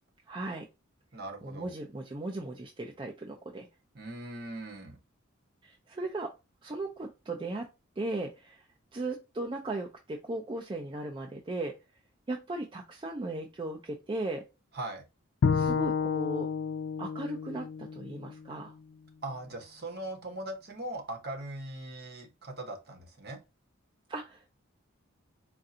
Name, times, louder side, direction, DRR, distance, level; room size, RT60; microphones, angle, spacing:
voice 1, 0.3-0.7 1.4-3.7 5.6-6.3 6.6-7.7 8.0-8.7 8.9-11.8 12.3-14.5 15.5-16.5 17.0-18.7 24.1-24.5, right 2 dB, 25° right, 0.4 m, -37 dB
voice 2, 1.1-1.7 3.9-5.0 14.7-15.0 19.2-23.4, right 2 dB, 50° right, 1.0 m, -40 dB
Bowed string instrument, 15.4-18.7, left 5 dB, 60° left, 0.3 m, -30 dB
4.5 x 2.5 x 2.6 m
head